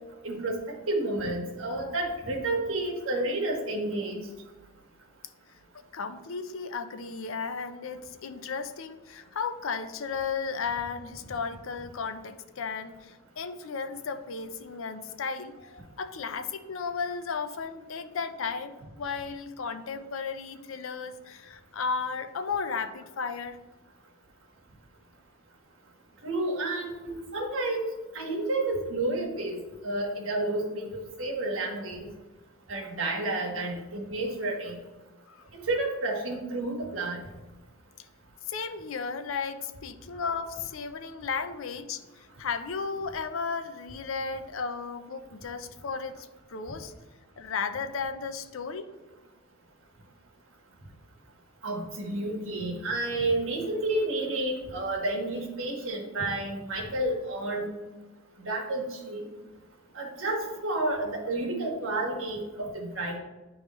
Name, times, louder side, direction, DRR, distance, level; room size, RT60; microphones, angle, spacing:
voice 1, 0.2-0.5 0.9-4.2 26.2-29.6 29.8-32.1 32.7-34.8 35.5-37.2 51.6-57.7 58.4-59.2 59.9-63.2, right 2 dB, 65° right, 1 dB, 1.4 m, -30 dB
voice 2, 5.9-23.6 35.3-35.4 38.5-46.9 47.4-48.9, left 5 dB, 65° left, 9 dB, 0.5 m, -34 dB
10.5 x 3.6 x 3.1 m, 1.2 s
head